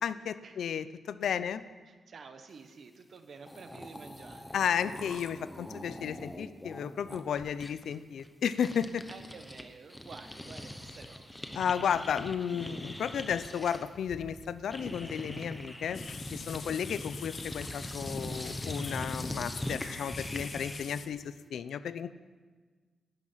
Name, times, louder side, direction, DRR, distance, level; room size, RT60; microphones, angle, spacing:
voice 1, 0.0-1.6 4.5-9.0 11.5-16.0 16.3-22.1, left 8 dB, 75° left, 14 dB, 0.6 m, -33 dB
voice 2, 1.8-4.6 9.1-11.6 16.4-16.7, right 5 dB, 45° right, 7 dB, 1.3 m, -51 dB
sound 1, 3.2-3.3 3.4-9.6 9.9-21.0, left 1 dB, 10° left, 0.9 m, -42 dB
sound 2, 15.9-21.1, left 6 dB, 55° left, 0.9 m, -46 dB
18.0 x 12.5 x 5.7 m, 1.4 s
wide cardioid pair, 180°, 0 cm